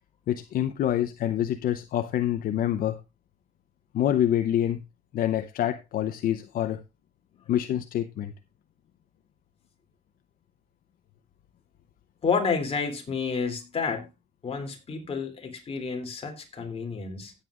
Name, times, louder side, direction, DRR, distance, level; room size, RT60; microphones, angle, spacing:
voice 1, 0.3-3.0 3.9-4.8 5.1-6.8 7.5-8.3, left 11 dB, 60° left, 0.7 m, -26 dB
voice 2, 12.2-14.1 14.4-17.3, left 5 dB, 35° left, 2.8 m, -30 dB
16.5 x 8.1 x 2.4 m
cardioid pair, 110°, 17 cm